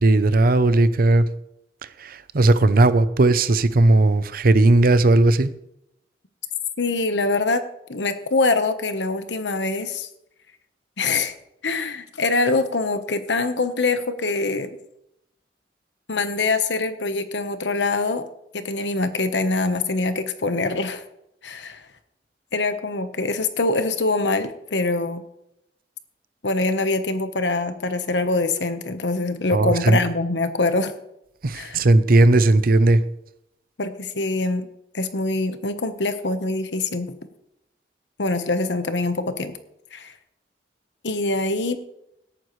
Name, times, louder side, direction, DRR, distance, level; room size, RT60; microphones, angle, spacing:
voice 1, 0.0-1.3 2.0-5.5 29.5-30.0 31.4-33.0, right 2 dB, 55° right, 14 dB, 0.6 m, -17 dB
voice 2, 6.8-7.6 7.9-10.1 11.0-11.3 11.6-14.7 16.1-18.2 18.5-21.0 21.4-21.8 22.5-25.2 26.4-30.9 31.5-31.8 33.8-34.7 34.9-37.1 38.2-39.5 39.9-40.1 41.0-41.8, left 3 dB, 85° left, 9 dB, 1.1 m, -24 dB
17.5 x 9.2 x 3.2 m, 0.80 s
head